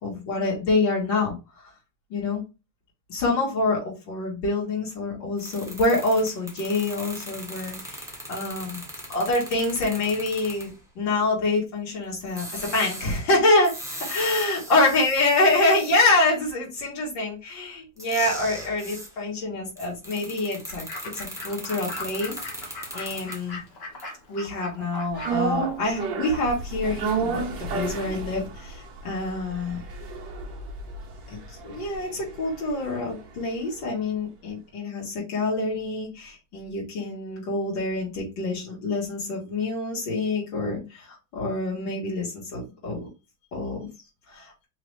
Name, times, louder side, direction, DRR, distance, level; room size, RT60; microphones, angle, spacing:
voice 1, 0.0-1.4 2.1-2.4 3.1-8.8 9.1-13.7 14.0-20.8 21.1-22.4 22.6-23.6 24.3-29.8 31.6-43.1 43.5-43.9 44.3-44.5, left 2 dB, 65° left, -4 dB, 2.6 m, -26 dB
sound 1, 5.4-10.8 12.3-16.0 18.0-19.1 19.8-23.5 24.0-24.1, right 1 dB, 5° right, 0.6 m, -39 dB
Fowl / Bird, 20.7-26.9, left 2 dB, 35° left, 1.1 m, -40 dB
sound 2, 25.2-33.5 33.8-33.9, right 4 dB, 65° right, 1.6 m, -32 dB
4.9 x 3.0 x 3.3 m, 0.28 s
omnidirectional pair, 2.1 m